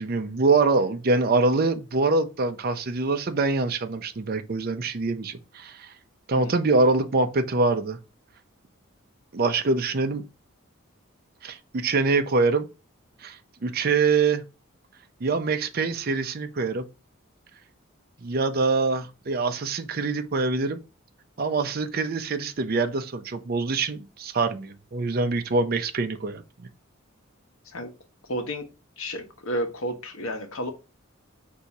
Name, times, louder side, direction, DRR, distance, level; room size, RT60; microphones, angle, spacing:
voice 1, 0.0-5.9 6.3-8.0 9.3-10.2 11.4-12.7 13.2-14.4 15.2-16.8 18.2-20.8 21.4-26.4, right 3 dB, 45° right, 0.5 m, -24 dB
voice 2, 6.3-6.6 27.6-27.9 28.3-28.7 29.0-30.7, equal, 75° left, 1.0 m, -31 dB
4.7 x 2.7 x 4.1 m
head